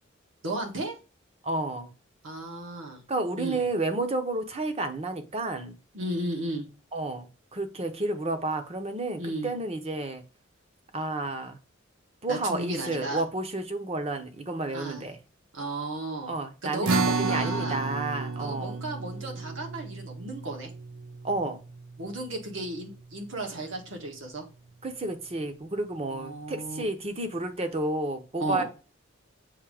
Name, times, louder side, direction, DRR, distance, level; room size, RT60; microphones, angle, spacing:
voice 1, 0.4-0.9 2.2-3.0 3.4-3.7 5.9-6.7 9.2-9.5 12.3-13.2 14.7-15.1 15.5-16.4 16.6-17.8 18.4-20.7 22.0-24.4 26.1-26.8 28.4-28.6, right 1 dB, 70° right, 1.7 m, -34 dB
voice 2, 1.4-1.9 3.1-5.8 6.9-10.2 10.9-11.6 12.2-15.2 16.3-18.8 21.2-21.6 24.8-28.6, right 2 dB, 30° right, 0.8 m, -31 dB
sound 1, 16.8-23.5, right 4 dB, 85° right, 0.6 m, -32 dB
7.3 x 2.8 x 4.9 m
head